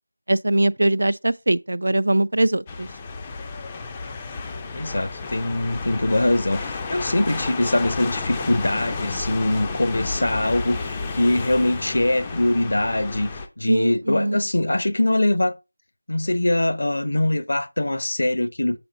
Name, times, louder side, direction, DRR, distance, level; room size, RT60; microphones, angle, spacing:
voice 1, 0.3-2.9 13.7-14.4, right 1 dB, 60° right, 0.4 m, -21 dB
sound 1, 2.7-13.5, left 4 dB, 10° left, 0.4 m, -32 dB
voice 2, 4.7-13.3 13.6-15.6 16.1-18.8, left 1 dB, 60° left, 0.9 m, -22 dB
7.6 x 4.0 x 3.9 m
figure-of-eight pair, 170°, 0 cm